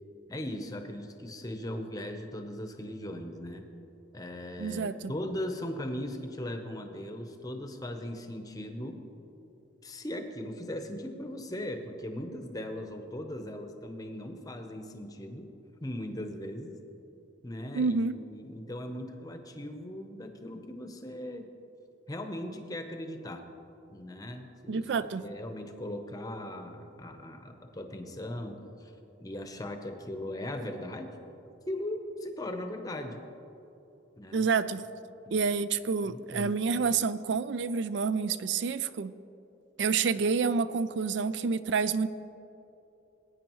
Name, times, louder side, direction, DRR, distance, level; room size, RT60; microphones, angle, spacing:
voice 1, 0.3-3.7 4.1-9.0 9.8-15.5 15.8-16.7 17.4-21.5 22.1-23.5 23.9-24.9 25.2-28.9 29.2-31.1 31.7-33.2 34.2-34.5 35.3-35.5 36.0-36.6, left 1 dB, 20° left, 5 dB, 0.7 m, -38 dB
voice 2, 4.6-5.1 17.7-18.2 24.7-25.2 34.3-34.8 35.3-39.1 39.8-42.1, right 5 dB, 65° right, 14 dB, 0.4 m, -28 dB
18.0 x 9.5 x 3.0 m, 3.0 s
head